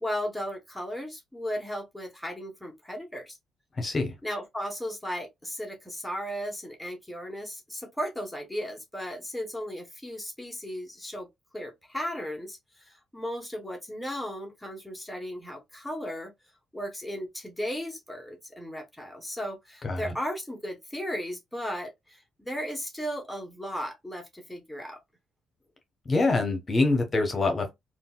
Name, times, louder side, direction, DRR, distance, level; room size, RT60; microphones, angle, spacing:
voice 1, 0.0-3.4 4.2-11.3 11.5-16.3 16.7-25.0, equal, 5° left, 0.9 m, -35 dB
voice 2, 3.8-4.1 19.8-20.1 26.1-27.7, left 3 dB, 35° left, 0.9 m, -25 dB
3.7 x 2.3 x 2.2 m
cardioid pair, 90°, 0 cm